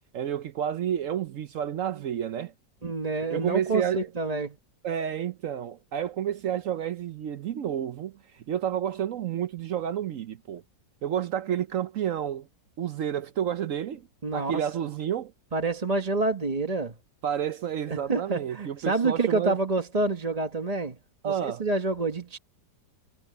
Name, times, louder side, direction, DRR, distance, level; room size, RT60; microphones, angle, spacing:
voice 1, 0.1-2.5 3.3-4.1 4.8-10.6 11.0-12.5 12.8-14.1 14.3-15.3 17.2-19.6 21.2-21.6, right 9 dB, 65° right, 0.9 m, -30 dB
voice 2, 2.8-4.6 14.2-14.5 15.5-16.9 17.9-21.0 21.2-22.4, right 3 dB, 25° right, 1.1 m, -27 dB
omnidirectional pair, 1.8 m